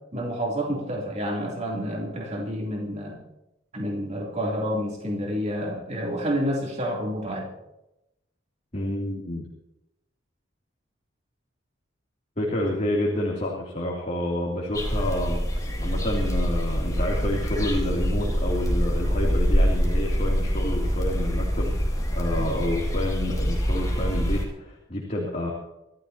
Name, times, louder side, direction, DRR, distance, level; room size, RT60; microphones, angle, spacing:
voice 1, 0.1-3.2 3.7-7.5 22.4-22.5, equal, 35° right, -2 dB, 3.3 m, -29 dB
voice 2, 8.7-9.4 12.4-25.5, left 1 dB, 35° left, -3 dB, 3.0 m, -29 dB
sound 1, 14.7-24.5, equal, 20° left, 3.8 m, -25 dB
25.5 x 14.5 x 2.9 m, 0.89 s
head